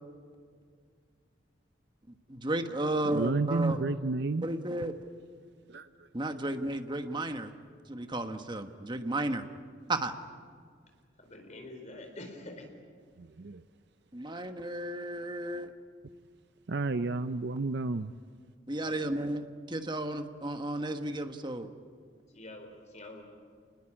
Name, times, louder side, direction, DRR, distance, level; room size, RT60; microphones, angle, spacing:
voice 1, 2.3-3.8 4.4-4.9 6.1-7.5 7.9-9.4 9.9-10.1 14.1-15.7 18.7-21.7, right 1 dB, 25° right, 7 dB, 1.4 m, -33 dB
voice 2, 3.1-4.4 5.7-5.8 13.4-13.6 16.7-18.1, right 3 dB, 60° right, 11 dB, 0.6 m, -30 dB
voice 3, 11.2-12.7 19.0-19.2 22.3-23.2, left 1 dB, 40° left, 4 dB, 4.4 m, -46 dB
28.0 x 20.5 x 8.8 m, 2.1 s
head